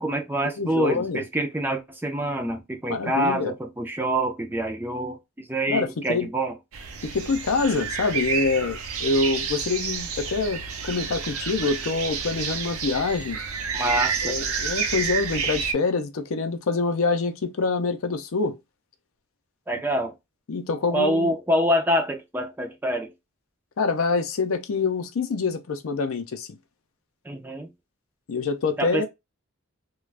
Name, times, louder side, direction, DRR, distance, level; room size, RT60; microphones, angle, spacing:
voice 1, 0.0-6.5 13.7-14.4 19.7-20.1 20.9-23.1 27.2-27.7 28.8-29.1, right 1 dB, 10° right, 0.3 m, -26 dB
voice 2, 0.6-1.2 2.9-3.5 5.7-6.3 7.0-13.4 14.2-18.6 20.5-21.3 23.8-26.5 28.3-29.1, left 4 dB, 70° left, 0.5 m, -26 dB
sound 1, 6.7-15.7, right 6 dB, 80° right, 0.5 m, -30 dB
2.4 x 2.2 x 3.2 m
head